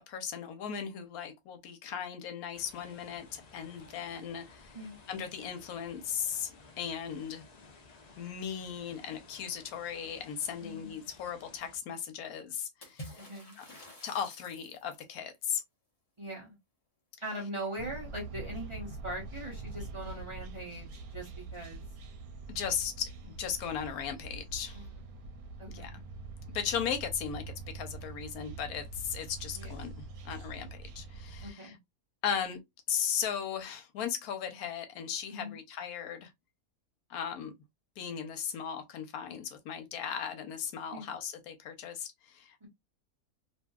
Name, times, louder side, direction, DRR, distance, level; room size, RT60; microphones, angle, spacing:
voice 1, 0.1-4.8 5.1-6.5 6.8-7.5 8.2-13.2 13.6-13.7 14.0-15.6 22.5-24.8 25.7-26.0 26.5-31.7 32.2-32.6 32.9-36.3 37.1-37.5 38.0-42.7, left 8 dB, 85° left, 1.1 m, -37 dB
sound 1, 2.5-11.8, left 3 dB, 60° left, 0.4 m, -56 dB
voice 2, 10.6-11.1 13.2-13.6 16.2-16.6 17.2-21.8 24.7-25.3 25.6-26.0 29.5-29.7 31.4-31.8 35.3-35.6 40.9-41.1 42.6-42.7, right 1 dB, 25° right, 0.8 m, -41 dB
Water / Splash splatter, 12.8-15.2, equal, 30° left, 0.8 m, -49 dB
sound 2, 17.8-31.5, right 3 dB, 85° right, 1.1 m, -44 dB
2.6 x 2.6 x 2.2 m
omnidirectional pair, 1.5 m